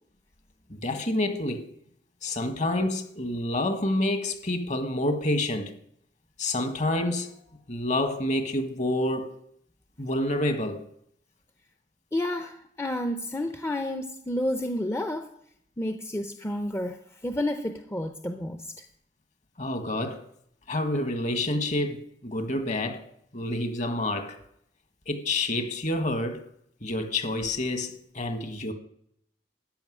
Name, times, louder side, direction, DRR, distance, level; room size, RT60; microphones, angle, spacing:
voice 1, 0.7-1.6 2.2-5.8 6.4-7.3 7.7-9.4 10.0-10.8 19.6-20.2 20.7-23.0 23.3-24.4 25.1-26.4 26.8-28.7, left 1 dB, 45° left, 1.5 m, -28 dB
voice 2, 12.1-15.3 15.8-17.0 17.2-18.7, left 1 dB, 15° left, 0.7 m, -30 dB
14.0 x 5.7 x 9.7 m
head